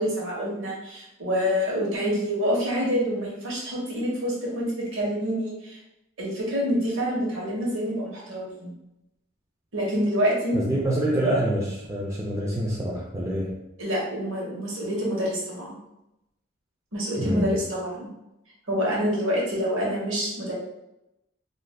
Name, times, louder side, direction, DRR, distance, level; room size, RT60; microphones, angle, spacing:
voice 1, 0.0-5.8 6.2-8.7 9.7-10.6 13.8-15.8 16.9-18.1 18.7-20.5, equal, 70° right, -3 dB, 1.0 m, -27 dB
voice 2, 10.5-13.6 17.2-17.5, right 1 dB, 15° right, -4 dB, 0.3 m, -26 dB
2.4 x 2.2 x 3.3 m, 0.89 s
head